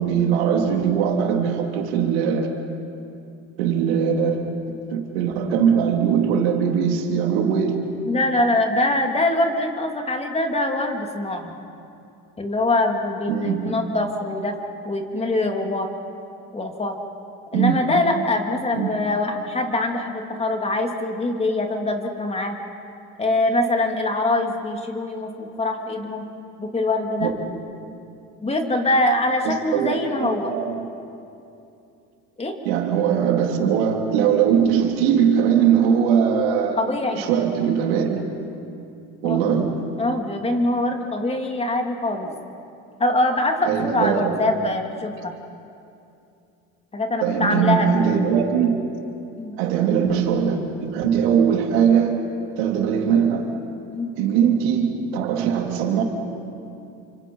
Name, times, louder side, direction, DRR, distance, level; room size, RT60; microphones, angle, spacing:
voice 1, 0.0-2.5 3.6-7.8 13.3-13.8 17.5-17.8 18.7-19.0 27.2-27.3 29.4-29.9 30.2-30.9 32.6-36.8 37.1-38.2 39.2-39.9 43.7-44.5 47.2-48.8 49.6-52.3 52.6-53.5 54.2-56.0, right 7 dB, 90° right, 2 dB, 3.0 m, -21 dB
voice 2, 8.1-11.5 12.4-14.5 14.8-15.9 16.5-16.9 17.5-22.6 23.2-26.3 26.6-27.3 28.4-30.5 32.4-32.5 36.8-37.3 39.2-39.5 40.0-42.3 43.0-45.3 46.9-48.2 49.4-49.5 53.9-54.1, left 2 dB, 20° left, 3 dB, 3.0 m, -23 dB
30.0 x 25.5 x 5.6 m, 2.6 s
supercardioid pair, 100°, 31 cm